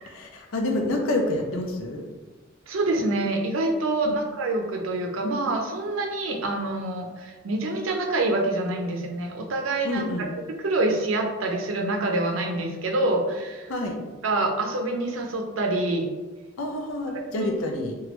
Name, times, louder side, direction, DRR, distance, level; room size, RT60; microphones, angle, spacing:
voice 1, 0.1-2.1 4.1-4.2 9.8-10.3 13.7-14.0 16.6-18.0, left 1 dB, 85° left, 2 dB, 0.5 m, -28 dB
voice 2, 2.7-13.7 14.2-16.1 17.3-17.5, right 2 dB, 75° right, 2 dB, 0.5 m, -26 dB
3.0 x 2.3 x 3.0 m, 1.2 s
head